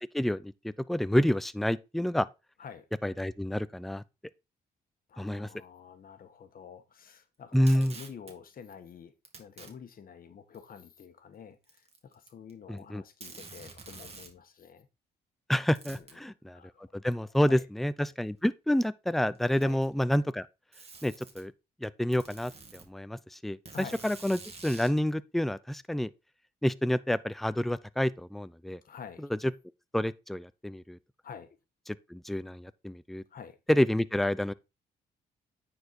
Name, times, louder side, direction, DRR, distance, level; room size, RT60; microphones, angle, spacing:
voice 1, 0.1-2.3 3.0-4.0 5.2-5.5 7.5-8.0 12.7-13.0 15.5-16.6 16.9-20.5 21.0-21.5 21.8-26.1 26.6-28.8 29.3-29.4 29.9-31.0 32.1-33.2 33.7-34.5, equal, ahead, 0.5 m, -28 dB
voice 2, 5.1-14.9 15.8-17.0 17.4-17.6 19.6-19.8 23.7-24.0 28.8-29.2 31.2-31.5 33.3-33.6, left 7 dB, 55° left, 1.4 m, -48 dB
Packing tape duct tape, 7.5-8.3 9.2-9.7 10.5-10.6 11.6-12.5 12.8-12.9 13.2-14.4 15.7-16.2 17.4-17.5 18.4-18.5 19.3-20.0 20.7-21.4 22.1-22.9 23.7-25.0, right 4 dB, 35° right, 2.4 m, -48 dB
9.4 x 4.6 x 4.4 m
cardioid pair, 75°, 18 cm